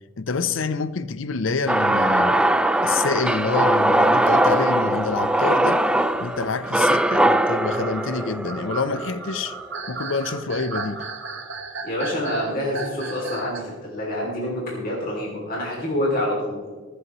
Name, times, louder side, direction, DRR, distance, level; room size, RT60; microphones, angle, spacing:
voice 1, 0.2-2.4 2.8-5.8 6.2-9.6 9.9-11.0, left 4 dB, 70° left, 0.6 m, -27 dB
sound 1, 1.7-9.8, right 1 dB, 5° right, 0.4 m, -21 dB
sound 2, 2.9-5.1 5.7-6.8 7.5-13.7, right 4 dB, 60° right, 1.4 m, -36 dB
voice 2, 11.8-16.6, left 1 dB, 45° left, 2.9 m, -27 dB
24.5 x 8.2 x 3.1 m
head